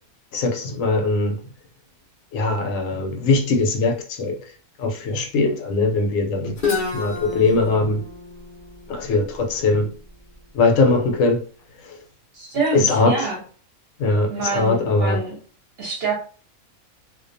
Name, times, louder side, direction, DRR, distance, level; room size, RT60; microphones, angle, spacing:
voice 1, 0.3-1.4 2.3-4.4 4.8-6.6 6.9-8.0 8.9-9.9 10.5-11.4 11.8-12.0 12.7-13.3 14.0-15.3, left 3 dB, 75° left, 0.9 m, -21 dB
Guitar, 6.6-10.3, left 4 dB, 50° left, 0.6 m, -30 dB
voice 2, 12.3-13.4 14.3-15.4 15.8-16.1, right 4 dB, 55° right, 0.8 m, -26 dB
2.4 x 2.2 x 2.5 m
omnidirectional pair, 1.4 m